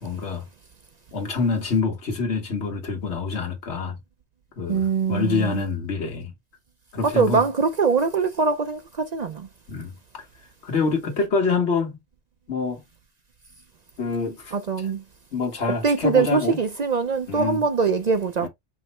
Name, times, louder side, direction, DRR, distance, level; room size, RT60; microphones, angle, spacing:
voice 1, 0.0-0.4 1.1-4.0 4.6-6.3 6.9-7.4 9.7-10.2 10.6-12.0 12.5-12.8 14.0-14.5 15.3-16.6 17.3-17.7 18.4-18.5, left 4 dB, 85° left, 1.7 m, -26 dB
voice 2, 4.7-5.6 7.0-9.5 14.5-15.0 15.8-18.5, right 5 dB, 50° right, 0.5 m, -22 dB
5.6 x 2.0 x 4.3 m
omnidirectional pair, 1.1 m